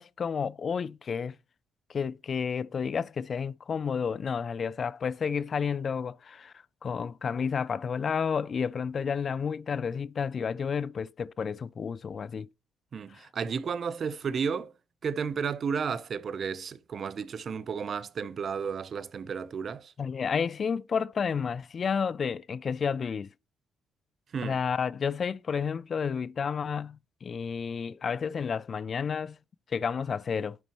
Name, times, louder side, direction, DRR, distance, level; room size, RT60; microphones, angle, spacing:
voice 1, 0.0-1.4 1.9-6.5 6.8-12.5 13.1-13.3 20.0-23.3 24.4-29.4 29.7-30.6, left 6 dB, 45° left, 0.4 m, -31 dB
voice 2, 12.9-14.7 15.0-19.9 24.3-24.6, right 6 dB, 50° right, 0.6 m, -32 dB
10.5 x 4.2 x 3.0 m
cardioid pair, 90°, 0 cm